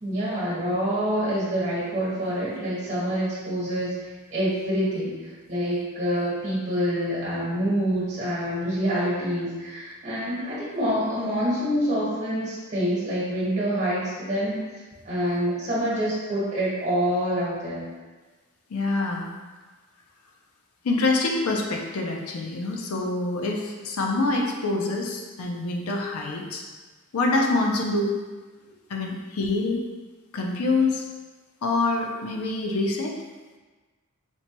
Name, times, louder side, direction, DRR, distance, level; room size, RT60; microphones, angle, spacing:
voice 1, 0.0-5.2 5.5-14.6 15.0-17.8, equal, 35° right, -7 dB, 1.2 m, -26 dB
voice 2, 18.7-19.3 20.8-26.6 27.1-28.2 28.9-29.8 30.3-31.0 31.6-33.1, left 3 dB, 85° left, 1 dB, 0.5 m, -25 dB
4.3 x 2.2 x 2.9 m, 1.3 s
head